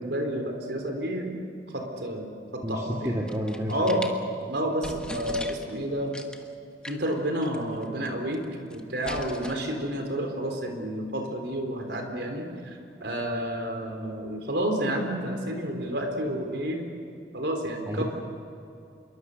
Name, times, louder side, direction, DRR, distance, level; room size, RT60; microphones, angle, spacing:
voice 1, 0.0-1.3 1.7-3.1 3.7-4.0 4.5-6.2 6.9-8.4 8.7-12.5 13.0-16.8 17.3-18.0, right 1 dB, 70° right, 3 dB, 4.1 m, -30 dB
voice 2, 2.6-4.0 17.9-18.0, equal, 20° right, -2 dB, 1.9 m, -30 dB
sound 1, 3.1-4.2 4.6-4.7 4.8-5.8 6.1-6.5 6.8-7.1 7.4-7.6 7.8-8.4 8.7-9.5, left 1 dB, 5° left, 1.3 m, -39 dB
26.5 x 23.0 x 6.9 m, 2.6 s
head